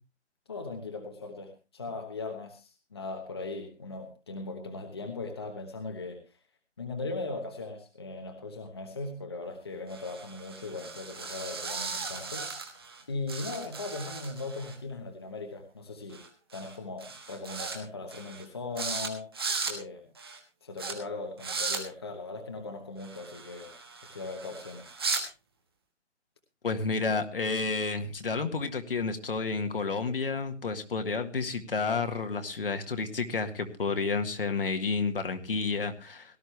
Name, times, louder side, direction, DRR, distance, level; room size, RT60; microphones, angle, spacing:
voice 1, 0.5-6.4 6.8-12.5 13.1-16.2 16.5-19.3 19.6-20.1 20.6-23.7 24.1-24.9, left 3 dB, 20° left, 3 dB, 1.1 m, -39 dB
sound 1, 9.9-13.0 13.3-14.8 16.1-16.3 16.5-16.8 17.0-17.8 18.1-18.4 18.8-19.1 19.3-19.7 20.2-20.4 20.8-20.9 21.4-21.8 23.0-25.2, right 4 dB, 20° right, 1.4 m, -37 dB
voice 2, 26.6-36.4, left 4 dB, 50° left, 7 dB, 1.8 m, -30 dB
18.0 x 12.5 x 3.2 m, 0.29 s
hypercardioid pair, 180°, 35 cm